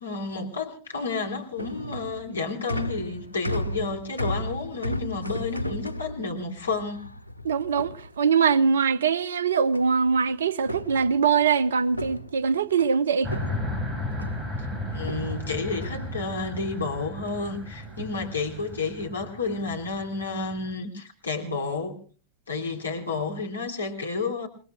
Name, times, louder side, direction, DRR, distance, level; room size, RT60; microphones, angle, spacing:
voice 1, 0.0-7.0 14.9-22.0 22.5-24.5, left 4 dB, 75° left, 3.2 m, -31 dB
sound 1, 1.1-8.6 9.7-10.2 10.5-13.0 13.3-14.5 15.0-16.7 17.1-17.6 17.9-18.2 19.0-19.3 19.8-20.1, equal, 85° right, 1.2 m, -36 dB
voice 2, 7.4-13.3, right 6 dB, 65° right, 1.0 m, -22 dB
sound 2, 13.2-20.7, left 1 dB, 10° right, 6.0 m, -35 dB
28.5 x 21.0 x 2.3 m
figure-of-eight pair, 90°, 0 cm